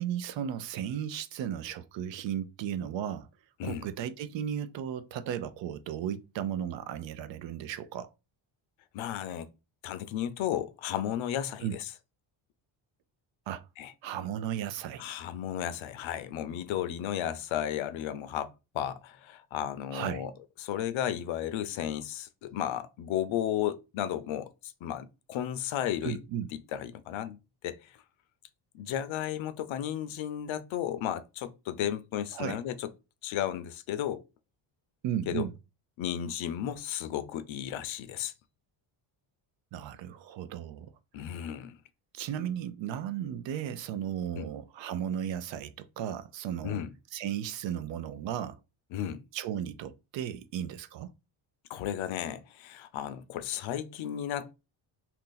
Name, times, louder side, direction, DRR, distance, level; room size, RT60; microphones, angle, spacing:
voice 1, 0.0-3.3 3.6-8.1 11.6-11.8 13.5-13.7 14.0-15.0 19.9-20.2 26.0-26.5 32.3-32.6 35.0-35.5 39.7-40.9 42.1-46.8 47.1-48.6 49.3-51.1, right 10 dB, 65° right, 0.5 m, -35 dB
voice 2, 8.9-9.5 9.8-11.9 13.8-13.9 15.0-20.3 20.6-26.2 26.5-27.4 27.6-28.0 28.7-32.9 33.2-34.2 35.3-35.5 36.0-38.3 41.1-41.8 44.3-44.5 46.6-46.9 48.9-49.2 51.7-54.5, left 10 dB, 70° left, 0.6 m, -34 dB
2.9 x 2.6 x 3.8 m
cardioid pair, 115°, 49 cm